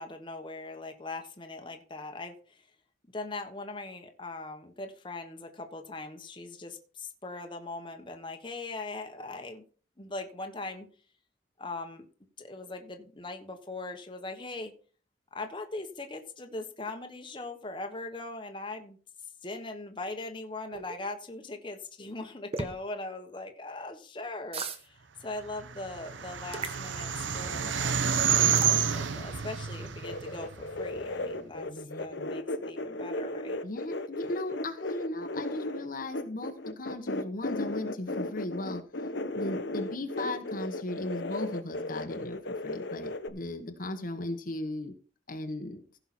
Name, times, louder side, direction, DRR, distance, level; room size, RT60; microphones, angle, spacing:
voice 1, 0.0-2.7 3.1-9.6 10.0-10.9 11.6-12.1 12.4-14.7 15.3-19.0 19.4-28.3 28.9-33.6, left 2 dB, 25° left, 4 dB, 1.2 m, -40 dB
sound 1, 20.7-21.0 22.5-22.7 24.5-24.8 26.5-26.8 28.5-28.8, right 4 dB, 30° right, 1.0 m, -35 dB
sound 2, 25.6-31.0, right 7 dB, 85° right, 0.8 m, -29 dB
sound 3, 30.0-43.3, left 2 dB, 70° left, 1.0 m, -35 dB
voice 2, 31.5-32.3 33.6-38.8 39.3-44.9 45.3-45.8, left 2 dB, 45° left, 6 dB, 1.1 m, -37 dB
15.5 x 5.7 x 4.3 m, 0.40 s
head